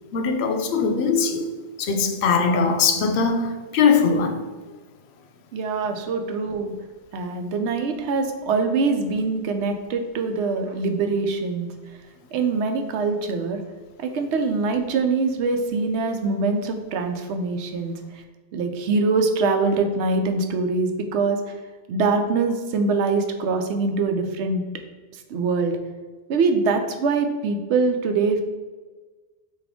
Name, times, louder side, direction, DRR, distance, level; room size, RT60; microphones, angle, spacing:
voice 1, 0.1-1.5 1.8-4.4, left 5 dB, 75° left, 6 dB, 0.8 m, -21 dB
voice 2, 5.5-6.7 7.1-11.7 12.3-13.6 14.0-17.9 18.5-21.4 21.9-24.6 25.3-25.8 26.3-28.4, right 4 dB, 85° right, 6 dB, 0.9 m, -23 dB
5.9 x 2.5 x 3.5 m, 1.3 s
omnidirectional pair, 1.1 m